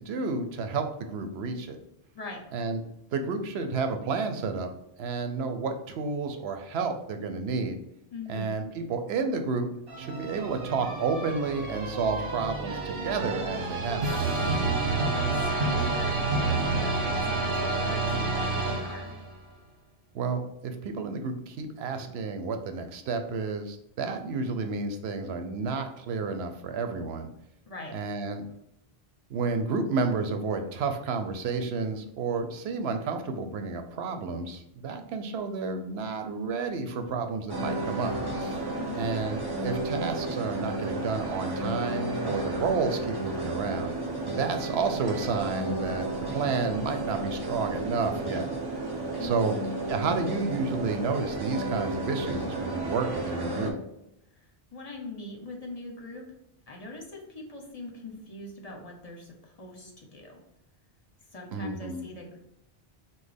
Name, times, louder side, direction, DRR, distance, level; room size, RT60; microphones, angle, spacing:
voice 1, 0.0-1.8 2.5-2.8 3.1-4.7 5.0-7.8 8.3-9.7 10.0-14.2 20.1-27.3 27.9-28.4 29.3-38.2 38.4-38.6 39.0-43.9 44.3-48.5 49.2-49.5 49.9-53.7 61.5-62.0, right 4 dB, 80° right, 7 dB, 0.9 m, -31 dB
voice 2, 8.1-8.5 15.1-19.1 27.7-27.9 38.8-39.1 49.2-49.5 54.3-56.2 56.7-60.4 61.3-62.4, left 2 dB, 40° left, 1 dB, 0.9 m, -42 dB
sound 1, 9.9-19.4, right 3 dB, 60° right, 1.1 m, -29 dB
sound 2, 37.5-53.7, right 2 dB, 25° right, 0.8 m, -32 dB
6.0 x 2.1 x 3.4 m, 0.80 s
omnidirectional pair, 1.0 m